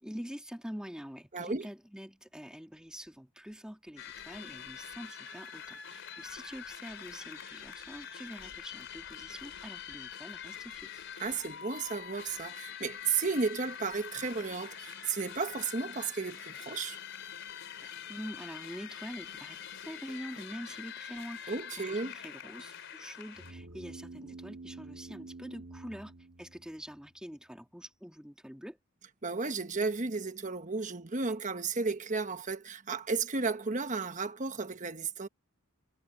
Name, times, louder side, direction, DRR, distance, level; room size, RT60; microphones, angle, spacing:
voice 1, 0.0-11.0 17.8-26.1 26.4-28.8, equal, 5° right, 2.6 m, -45 dB
voice 2, 1.3-1.7 11.2-17.0 21.5-22.1 29.2-35.3, right 4 dB, 35° right, 1.1 m, -33 dB
sound 1, 4.0-23.5, left 8 dB, 60° left, 4.4 m, -45 dB
sound 2, 23.4-27.1, right 3 dB, 60° right, 2.1 m, -48 dB
head